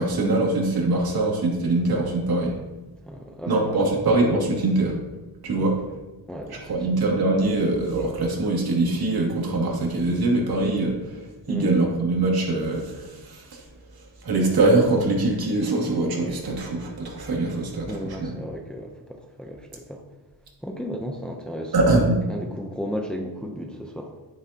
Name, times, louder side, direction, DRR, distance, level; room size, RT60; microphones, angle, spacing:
voice 1, 0.0-2.6 3.5-5.0 5.4-5.8 6.7-13.6 14.2-18.3 21.7-22.2, right 2 dB, 60° right, -2 dB, 2.7 m, -23 dB
voice 2, 3.1-3.8 5.5-5.7 6.3-6.9 11.5-11.7 17.9-20.0 20.6-22.0 22.3-24.2, equal, ahead, 2 dB, 0.7 m, -34 dB
11.0 x 9.7 x 2.9 m, 1.2 s
wide cardioid pair, 155°, 41 cm